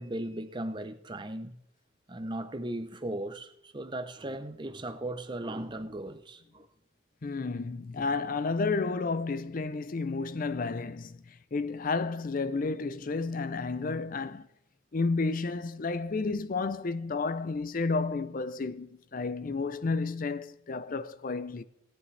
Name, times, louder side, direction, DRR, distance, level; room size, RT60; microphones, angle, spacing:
voice 1, 0.0-1.6 2.1-6.7, right 1 dB, 20° right, 0.6 m, -37 dB
voice 2, 7.2-14.5 14.9-21.6, left 4 dB, 40° left, 0.5 m, -31 dB
17.5 x 9.8 x 3.3 m
head